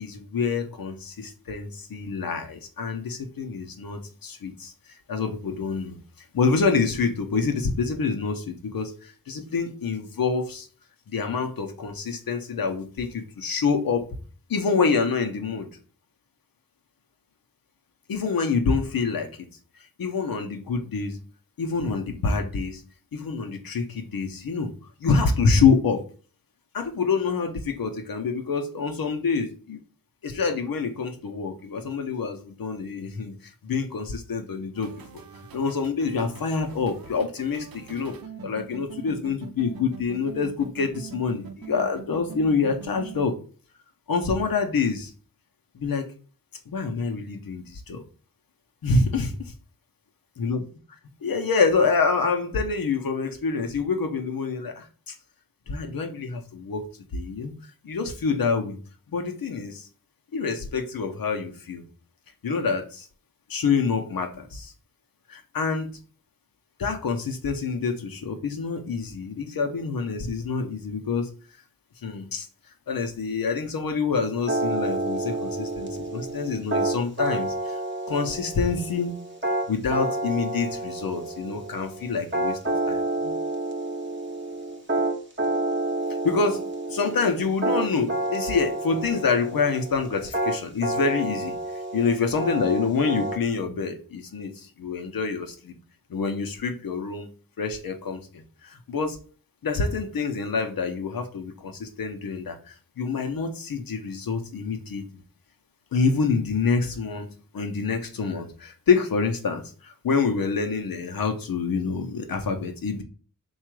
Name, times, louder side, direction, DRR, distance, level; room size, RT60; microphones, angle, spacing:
voice 1, 0.0-4.7 5.1-6.0 6.3-10.7 11.1-14.1 14.5-15.7 18.1-19.5 20.0-21.2 21.6-22.8 23.1-24.7 25.0-26.0 26.7-29.8 30.2-33.4 33.6-35.0 35.5-38.2 38.4-43.4 44.1-45.1 45.7-46.1 46.7-48.0 48.8-49.5 50.4-50.6 51.2-55.1 55.7-56.9 57.1-57.5 57.8-58.8 59.1-59.9 60.3-61.8 62.4-63.1 63.5-64.7 65.3-65.9 66.8-71.3 72.0-72.5 72.9-77.8 78.1-79.1 79.7-83.4 86.2-86.6 86.9-91.5 91.9-95.7 96.1-97.3 97.6-99.2 99.6-105.1 105.9-113.0, left 5 dB, 85° left, 5 dB, 0.7 m, -26 dB
sound 1, 34.7-43.2, right 6 dB, 85° right, 0.6 m, -42 dB
sound 2, 74.5-93.4, right 2 dB, 35° right, 0.8 m, -29 dB
3.7 x 2.4 x 4.5 m, 0.40 s
wide cardioid pair, 80°, 34 cm